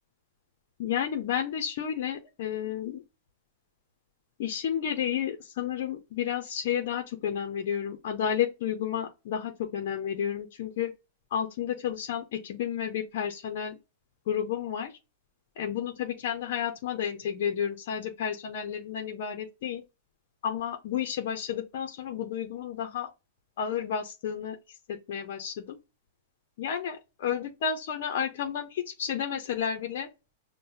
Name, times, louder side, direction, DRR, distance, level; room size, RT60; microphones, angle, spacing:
voice 1, 0.8-3.0 4.4-10.9 11.3-13.7 14.3-14.9 15.6-19.8 20.4-23.1 23.6-24.6 24.9-25.8 26.6-30.1, left 8 dB, 60° left, 0.7 m, -31 dB
5.3 x 2.1 x 2.7 m
hypercardioid pair, 140°, 0 cm